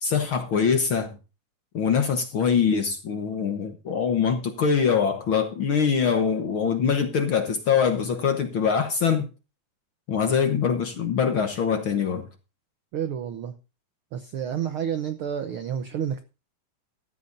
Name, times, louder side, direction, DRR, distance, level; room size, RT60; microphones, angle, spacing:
voice 1, 0.0-1.2 1.7-9.3 10.1-12.3, left 6 dB, 55° left, 1.5 m, -23 dB
voice 2, 12.9-13.6 14.1-16.2, right 9 dB, 75° right, 1.2 m, -30 dB
15.0 x 13.0 x 2.6 m
omnidirectional pair, 3.6 m